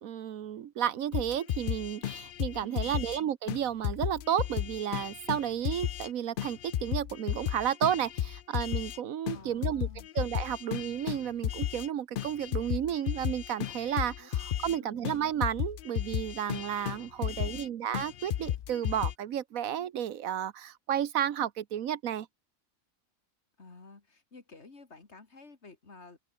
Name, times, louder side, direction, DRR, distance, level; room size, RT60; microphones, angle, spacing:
voice 1, 0.0-9.9 10.1-22.3, right 10 dB, 80° right, 1.3 m, -32 dB
sound 1, 1.1-3.2 3.5-3.6 3.8-6.1 6.4-9.0 9.3-11.9 12.2-14.8 15.0-15.2 15.4-17.7 17.9-19.1, left 11 dB, 70° left, 0.5 m, -34 dB
voice 2, 2.6-3.0 9.3-10.1 14.2-14.3 14.7-15.1 17.1-17.7 23.6-26.2, left 3 dB, 50° left, 2.8 m, -52 dB
open air
omnidirectional pair, 1.4 m